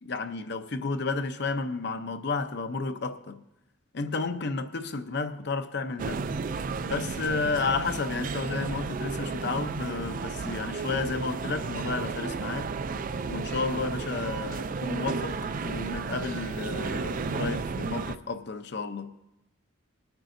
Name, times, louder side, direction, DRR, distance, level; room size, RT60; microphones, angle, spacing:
voice 1, 0.0-3.4 3.9-6.2 6.8-12.7 13.2-15.4 15.6-19.1, left 4 dB, 55° left, 0.6 m, -32 dB
sound 1, 6.0-18.2, right 4 dB, 40° right, 0.3 m, -33 dB
21.0 x 9.1 x 2.6 m
head